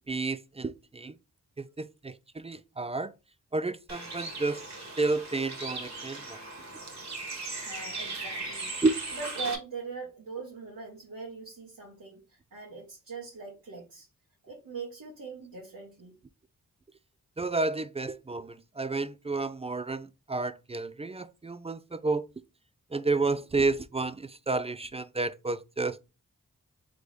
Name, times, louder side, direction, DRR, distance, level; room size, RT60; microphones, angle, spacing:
voice 1, 0.1-1.1 1.6-3.1 3.5-4.6 5.0-6.4 8.8-9.0 17.4-22.2 22.9-26.0, right 3 dB, 20° right, 0.3 m, -31 dB
Bird, 3.9-9.6, right 3 dB, 55° right, 1.5 m, -38 dB
voice 2, 7.6-8.8 9.1-14.1 14.4-16.1, right 4 dB, 80° right, 1.3 m, -41 dB
3.8 x 3.2 x 3.2 m
cardioid pair, 45°, 34 cm